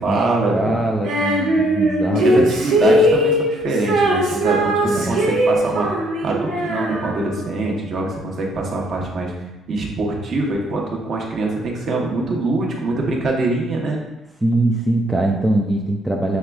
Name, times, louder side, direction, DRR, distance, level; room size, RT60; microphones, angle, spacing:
voice 1, 0.0-0.8 2.2-5.9 6.2-9.3 9.7-14.0, right 2 dB, 45° right, 0 dB, 0.9 m, -23 dB
voice 2, 0.5-2.5 3.0-3.1 4.8-5.2 14.4-16.4, right 1 dB, 5° right, 0 dB, 0.4 m, -22 dB
Female singing, 1.0-7.5, right 1 dB, 85° right, 1.3 m, -19 dB
6.3 x 3.4 x 2.3 m, 1.0 s
cardioid pair, 145°, 0 cm